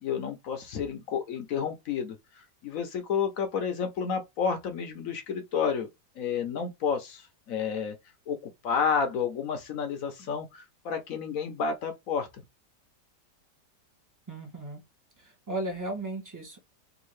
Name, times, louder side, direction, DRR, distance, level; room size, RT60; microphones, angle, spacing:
voice 1, 0.0-2.2 2.6-5.9 6.2-8.0 8.3-12.3, left 6 dB, 65° left, 0.9 m, -30 dB
voice 2, 14.3-14.8 15.2-16.6, right 2 dB, 20° right, 0.6 m, -35 dB
3.5 x 2.6 x 3.1 m
omnidirectional pair, 1.9 m